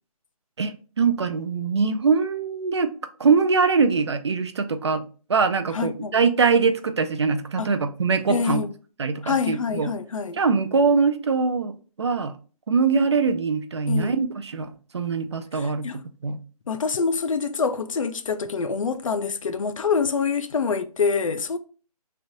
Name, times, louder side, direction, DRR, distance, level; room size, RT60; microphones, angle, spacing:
voice 1, 0.6-2.9 3.2-5.0 5.3-8.6 9.0-9.9 10.4-12.3 12.7-15.9 16.2-16.4, right 5 dB, 45° right, 0.4 m, -22 dB
voice 2, 5.7-6.1 7.6-7.7 8.3-8.7 9.2-10.4 13.9-14.1 15.5-16.0 16.7-21.6, left 5 dB, 55° left, 0.5 m, -26 dB
3.3 x 2.5 x 3.8 m
hypercardioid pair, 160°, 20 cm